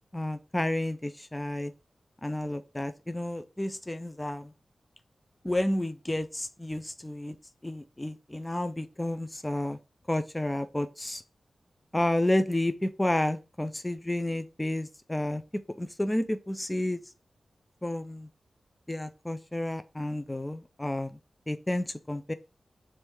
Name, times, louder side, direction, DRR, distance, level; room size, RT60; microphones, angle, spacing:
voice 1, 0.1-1.7 2.2-4.5 5.4-7.3 7.6-9.8 10.1-11.2 11.9-15.4 15.8-17.0 17.8-18.3 18.9-21.2 21.5-22.3, left 1 dB, 15° left, 0.4 m, -31 dB
3.5 x 3.2 x 4.5 m
wide cardioid pair, 90°, 0 cm